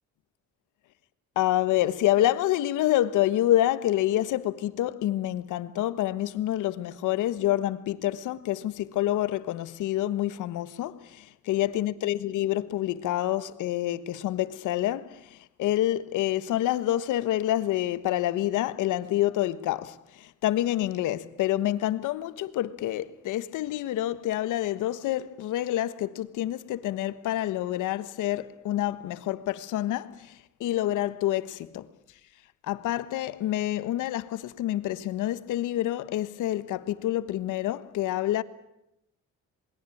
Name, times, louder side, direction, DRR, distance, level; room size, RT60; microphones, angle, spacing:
voice 1, 1.3-31.9 32.6-38.4, left 13 dB, 90° left, 1.4 m, -27 dB
27.5 x 21.5 x 8.7 m
cardioid pair, 90°, 30 cm